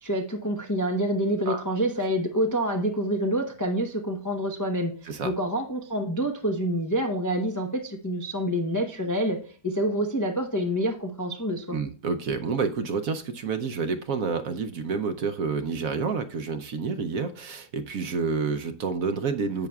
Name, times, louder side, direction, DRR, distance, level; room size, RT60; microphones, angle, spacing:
voice 1, 0.0-11.8, equal, 25° left, 3 dB, 0.4 m, -27 dB
voice 2, 11.7-19.7, right 5 dB, 65° right, 8 dB, 1.0 m, -29 dB
10.5 x 8.0 x 2.3 m, 0.43 s
omnidirectional pair, 1.8 m